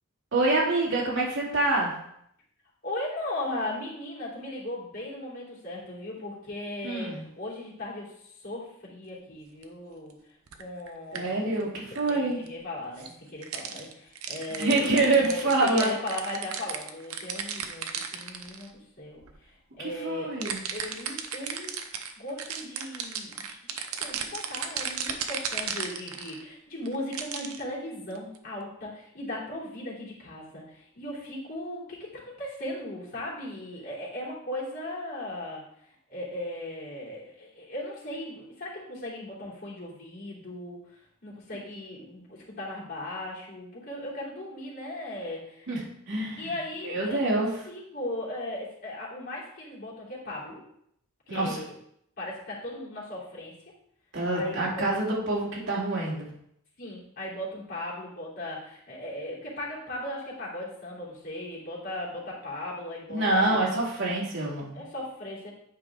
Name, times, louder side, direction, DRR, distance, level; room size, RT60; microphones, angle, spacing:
voice 1, 0.3-1.9 6.8-7.2 11.1-12.4 14.6-15.9 19.8-20.6 45.7-45.8 46.1-46.5 46.8-47.5 51.3-51.6 54.1-56.3 63.1-64.8, right 2 dB, 60° right, -4 dB, 2.5 m, -26 dB
voice 2, 2.8-10.1 10.6-11.7 12.1-32.1 32.4-35.6 36.1-45.7 46.4-47.3 47.6-50.6 51.3-51.7 52.2-53.5 54.3-54.6 56.8-63.6 64.7-65.5, left 1 dB, 45° left, -6 dB, 3.2 m, -37 dB
sound 1, 9.6-9.7 10.5-10.9 11.1-11.2 11.6-11.7 11.9-12.1 12.5-12.6 13.0-13.1 13.4-18.7 19.2-19.4 20.4-26.4 26.8-27.6 28.1-28.4, right 7 dB, 85° right, 0.8 m, -35 dB
9.4 x 4.9 x 3.6 m, 0.71 s
head